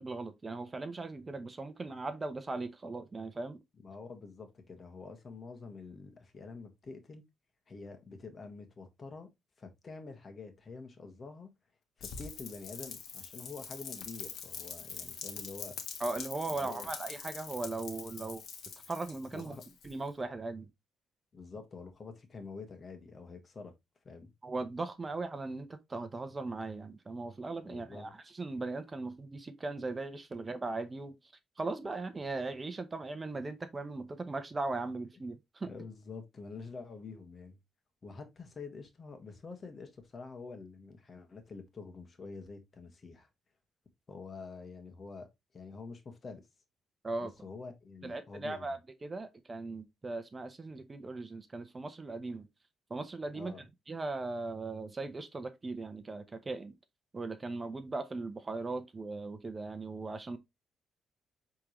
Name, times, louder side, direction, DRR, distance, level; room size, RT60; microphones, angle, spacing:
voice 1, 0.0-3.6 16.0-18.4 18.9-19.6 19.8-20.7 24.4-35.7 47.0-47.3 48.0-52.5 52.9-53.5 53.9-56.7 57.1-60.4, right 3 dB, 25° right, 0.8 m, -38 dB
voice 2, 3.8-7.2 7.7-9.3 9.6-11.5 12.0-15.8 16.5-16.9 19.3-19.6 21.3-23.7 24.0-24.3 27.7-28.1 35.6-37.6 38.0-43.3 44.1-45.3 45.5-46.4 47.2-48.8 53.3-53.6, left 4 dB, 40° left, 1.7 m, -47 dB
Rain, 12.0-20.1, left 7 dB, 70° left, 1.5 m, -44 dB
8.1 x 3.7 x 3.1 m
cardioid pair, 90°, 0 cm